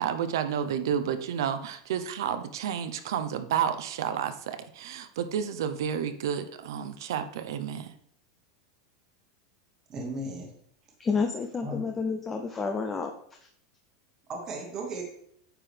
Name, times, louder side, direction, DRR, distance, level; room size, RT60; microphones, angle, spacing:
voice 1, 0.0-7.9, right 8 dB, 75° right, 10 dB, 0.7 m, -31 dB
voice 2, 9.9-10.5 11.6-11.8 14.3-15.0, right 1 dB, 20° right, 0 dB, 1.3 m, -35 dB
voice 3, 11.0-13.1, left 5 dB, 15° left, 3 dB, 0.4 m, -29 dB
9.1 x 5.9 x 3.3 m, 0.68 s
supercardioid pair, 175°, 2 cm